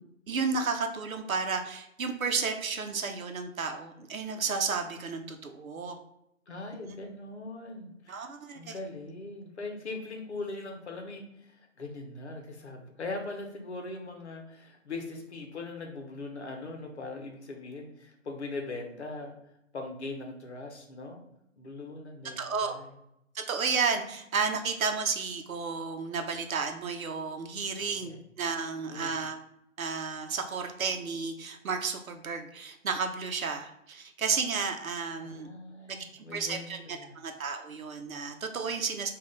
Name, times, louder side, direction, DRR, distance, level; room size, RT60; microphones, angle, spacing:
voice 1, 0.3-6.0 6.8-6.9 8.1-8.7 22.4-22.8 23.3-29.4 29.8-35.5 36.1-39.1, right 5 dB, 85° right, 5 dB, 0.8 m, -32 dB
voice 2, 6.5-8.3 8.5-19.4 19.7-21.2 21.6-22.9 28.0-28.2 28.9-29.1 35.2-37.1, left 3 dB, 55° left, 3 dB, 0.9 m, -40 dB
3.7 x 2.5 x 3.7 m, 0.80 s
hypercardioid pair, 170°, 40 cm